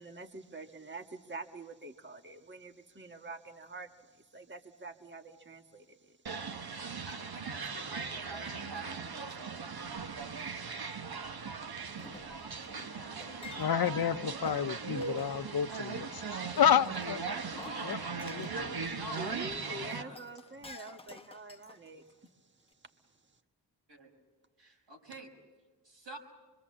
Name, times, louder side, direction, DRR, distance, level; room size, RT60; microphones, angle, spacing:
voice 1, 0.0-5.9 19.2-22.0, right 3 dB, 25° right, 1.5 m, -46 dB
wildwood mariner hotdog, 6.3-20.0, right 5 dB, 55° right, 1.3 m, -39 dB
voice 2, 7.0-10.1 12.1-12.4 12.9-13.7 17.5-20.2 23.9-24.1 24.6-25.3 25.8-26.2, right 2 dB, 80° right, 5.9 m, -48 dB
Chink clink, 12.0-13.9 14.5-14.7 15.0-15.4 16.6-18.6 19.9-22.3 22.7-22.8, left 3 dB, 15° left, 1.0 m, -51 dB
voice 3, 12.7-17.2 17.8-18.0 18.3-18.9, left 9 dB, 55° left, 0.7 m, -31 dB
25.0 x 23.5 x 7.5 m
cardioid pair, 45°, 43 cm